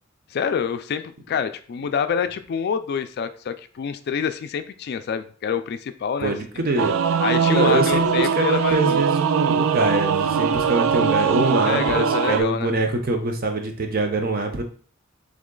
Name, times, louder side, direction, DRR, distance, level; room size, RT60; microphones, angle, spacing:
voice 1, 0.3-6.3 7.2-9.0 11.6-12.7, left 7 dB, 55° left, 10 dB, 0.3 m, -27 dB
voice 2, 6.2-6.9 7.5-14.6, right 2 dB, 50° right, 4 dB, 0.7 m, -24 dB
Singing / Musical instrument, 6.8-12.4, right 6 dB, 80° right, 0.3 m, -21 dB
3.7 x 3.1 x 3.8 m, 0.43 s
head